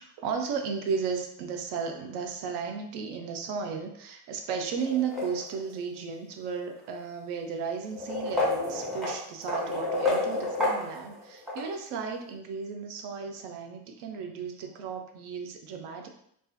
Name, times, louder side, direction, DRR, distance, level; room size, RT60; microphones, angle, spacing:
voice 1, 0.0-16.1, right 6 dB, 75° right, 4 dB, 0.5 m, -34 dB
sound 1, 4.8-5.8 6.8-6.9 7.9-11.7, left 2 dB, ahead, 0.3 m, -30 dB
2.4 x 2.3 x 2.5 m, 0.70 s
cardioid pair, 155°, 41 cm